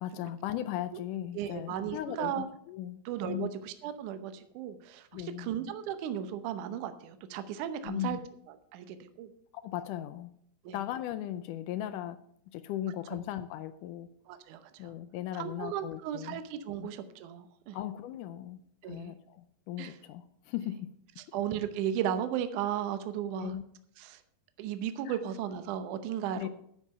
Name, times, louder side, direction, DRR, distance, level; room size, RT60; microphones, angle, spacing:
voice 1, 0.0-3.0 3.3-3.5 5.1-5.5 7.8-8.2 9.6-10.3 10.7-12.2 12.5-14.1 14.8-16.4 16.8-16.9 17.7-20.9 23.4-23.6 25.1-25.2 26.4-26.5, left 12 dB, 85° left, 10 dB, 1.9 m, -37 dB
voice 2, 1.3-2.5 3.1-8.2 8.7-9.3 10.7-10.8 14.3-14.9 15.3-17.8 18.8-19.1 19.8-19.9 21.3-23.6 24.0-24.2 24.6-26.5, right 9 dB, 70° right, 10 dB, 2.1 m, -35 dB
9.9 x 7.4 x 6.6 m, 0.69 s
omnidirectional pair, 4.1 m